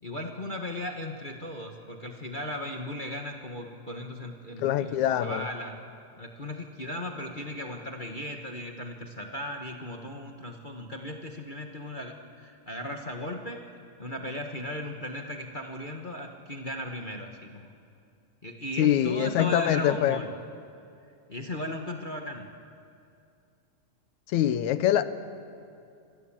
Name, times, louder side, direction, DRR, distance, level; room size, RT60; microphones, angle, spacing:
voice 1, 0.0-5.9 6.2-17.7 18.4-20.3 21.3-22.5, left 1 dB, 35° left, 2 dB, 0.7 m, -37 dB
voice 2, 4.6-5.4 18.8-20.2 24.3-25.0, left 11 dB, 80° left, 12 dB, 2.3 m, -24 dB
26.0 x 24.5 x 7.4 m, 2.5 s
omnidirectional pair, 3.3 m